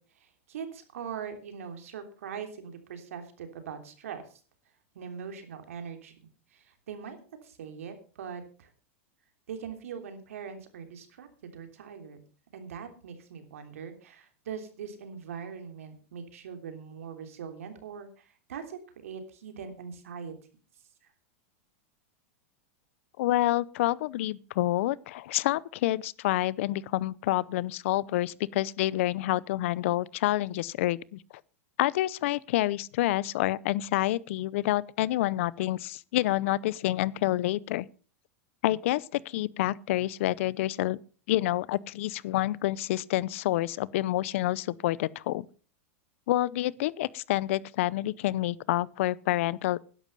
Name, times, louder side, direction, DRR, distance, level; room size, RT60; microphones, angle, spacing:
voice 1, 0.2-4.4 4.9-6.1 6.5-8.7 9.5-11.3 11.5-12.2 12.5-20.3, right 7 dB, 85° right, 3.2 m, -41 dB
voice 2, 23.2-31.2 31.8-37.9 38.6-41.0 41.3-45.5 46.3-49.8, left 15 dB, 65° left, 0.7 m, -28 dB
12.5 x 11.0 x 5.5 m
supercardioid pair, 135°, 7 cm